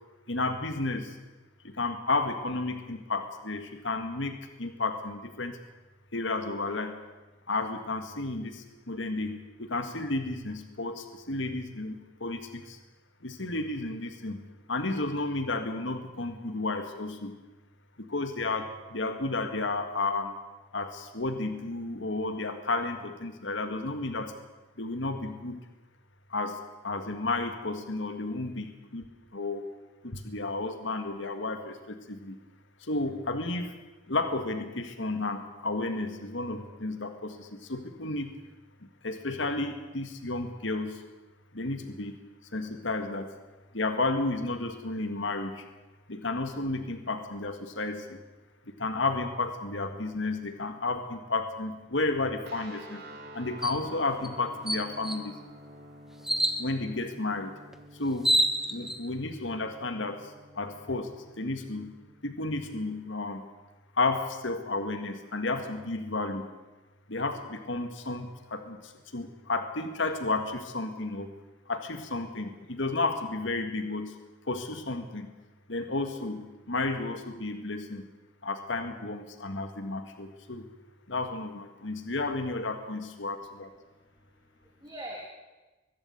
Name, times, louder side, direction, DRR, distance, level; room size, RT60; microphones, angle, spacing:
voice 1, 0.3-1.2 1.6-5.6 6.1-7.0 7.5-12.8 13.2-14.4 14.7-17.4 18.0-20.4 20.7-24.3 24.8-25.6 26.3-29.0 29.3-29.6 30.0-32.4 32.8-33.8 34.1-38.3 39.0-41.0 41.5-42.2 42.5-43.3 43.7-45.6 46.1-48.2 48.7-53.0 53.3-55.4 56.6-57.5 57.9-58.4 58.7-61.9 62.2-63.4 63.9-66.5 67.1-71.3 71.7-74.2 74.5-75.3 75.7-78.0 78.4-80.7 81.1-83.7, left 2 dB, 75° left, 7 dB, 1.8 m, -32 dB
sound 1, 52.4-62.8, right 1 dB, 55° right, 3.7 m, -50 dB
sound 2, 53.6-53.8 54.2-54.3 54.7-55.2 56.2-56.6 57.7-57.8 58.1-59.0, right 1 dB, ahead, 1.3 m, -26 dB
voice 2, 83.9-85.3, right 1 dB, 20° right, -2 dB, 3.1 m, -44 dB
23.0 x 12.5 x 9.6 m, 1.2 s
head